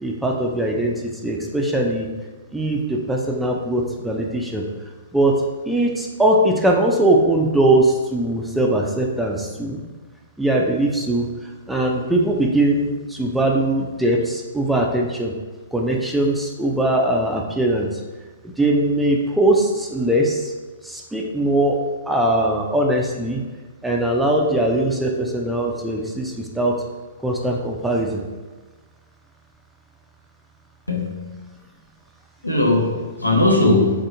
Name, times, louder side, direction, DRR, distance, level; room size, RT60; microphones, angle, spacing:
voice 1, 0.0-2.1 2.5-4.7 5.1-5.3 5.7-9.8 10.4-11.3 11.7-15.3 15.7-18.0 18.4-20.5 20.8-21.8 22.1-23.4 23.8-26.8 27.2-28.3, right 1 dB, 5° right, -1 dB, 0.4 m, -20 dB
voice 2, 30.9-31.3 32.4-34.1, left 2 dB, 90° left, -1 dB, 0.6 m, -19 dB
3.3 x 2.7 x 2.5 m, 1.3 s
figure-of-eight pair, 115°, 0 cm